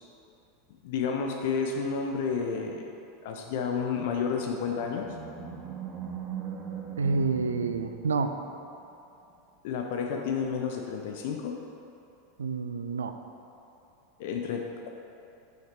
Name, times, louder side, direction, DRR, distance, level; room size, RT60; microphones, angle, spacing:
voice 1, 0.8-2.9 3.2-5.1 9.6-11.6 14.2-14.9, left 6 dB, 55° left, 2 dB, 0.5 m, -31 dB
Animal, 4.3-8.7, right 8 dB, 20° right, 0.8 m, -40 dB
voice 2, 7.0-8.3 12.4-13.1, right 4 dB, 70° right, 7 dB, 0.4 m, -28 dB
5.9 x 5.7 x 4.3 m, 2.7 s
figure-of-eight pair, 85°, 0 cm